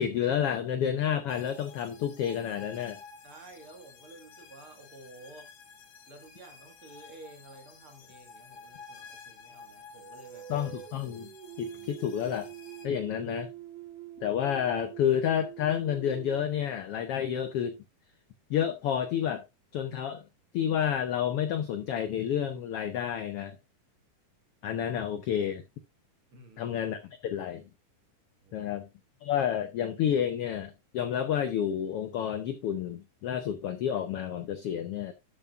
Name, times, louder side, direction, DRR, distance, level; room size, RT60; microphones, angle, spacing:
voice 1, 0.0-3.0 10.5-11.3 11.6-12.5 12.8-13.5 14.2-17.8 18.5-19.4 19.7-20.2 20.5-23.6 24.6-25.6 26.6-27.6 28.5-28.9 29.2-35.1, left 9 dB, 85° left, 1.3 m, -30 dB
sound 1, 1.3-12.9, left 5 dB, 55° left, 1.9 m, -52 dB
voice 2, 3.2-5.5 6.1-10.5 26.3-26.8 28.4-28.7, right 2 dB, 50° right, 2.2 m, -52 dB
sound 2, 9.9-17.3, right 13 dB, 65° right, 2.4 m, -46 dB
12.0 x 7.1 x 2.4 m
omnidirectional pair, 3.6 m